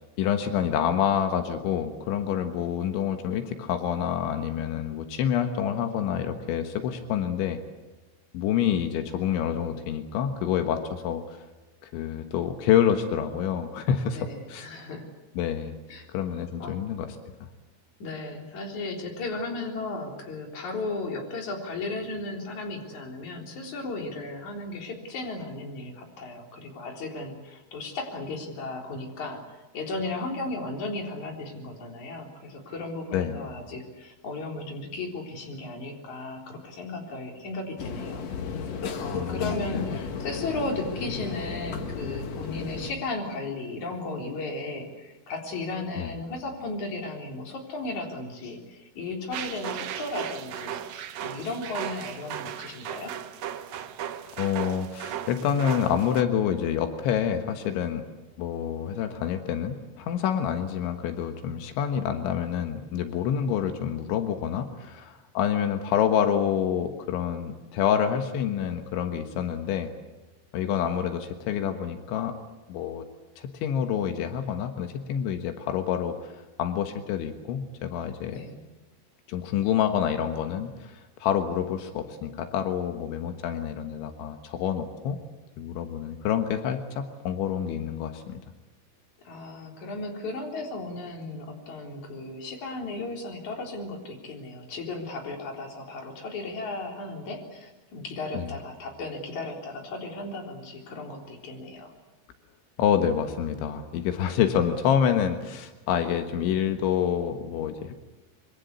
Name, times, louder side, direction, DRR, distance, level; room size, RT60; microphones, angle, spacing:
voice 1, 0.2-7.6 8.3-11.4 11.8-14.7 15.4-15.7 16.1-17.3 33.1-33.4 39.1-39.8 46.0-46.1 54.4-58.0 58.4-69.9 70.5-72.4 72.7-73.1 73.4-76.3 76.6-78.4 79.3-85.2 85.6-88.4 98.3-98.5 102.8-107.9, left 9 dB, 85° left, 7 dB, 3.8 m, -27 dB
voice 2, 14.1-15.1 15.9-16.1 16.6-16.8 18.0-38.3 39.0-53.2 78.3-78.6 89.2-101.9, left 2 dB, 40° left, 2 dB, 4.8 m, -35 dB
sound 1, 37.8-42.9, left 5 dB, 60° left, 1.8 m, -34 dB
sound 2, 49.3-56.2, right 10 dB, 70° right, 2.3 m, -36 dB
26.0 x 24.0 x 8.3 m, 1.1 s
omnidirectional pair, 5.3 m